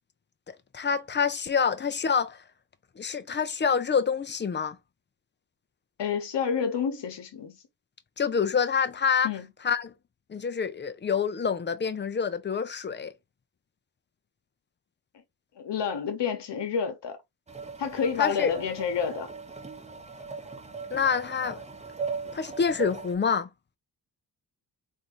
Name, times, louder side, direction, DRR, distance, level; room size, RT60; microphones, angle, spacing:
voice 1, 0.5-2.4 3.0-4.8 8.2-9.3 9.6-9.9 10.3-13.1 18.2-18.5 20.9-21.6 22.3-23.5, left 6 dB, 30° left, 0.4 m, -27 dB
voice 2, 6.0-7.6 9.2-9.5 15.6-17.2 17.8-19.3, left 6 dB, 80° left, 1.0 m, -29 dB
sound 1, 17.5-23.2, right 4 dB, 15° right, 0.7 m, -38 dB
3.6 x 2.6 x 2.9 m
wide cardioid pair, 95°, 42 cm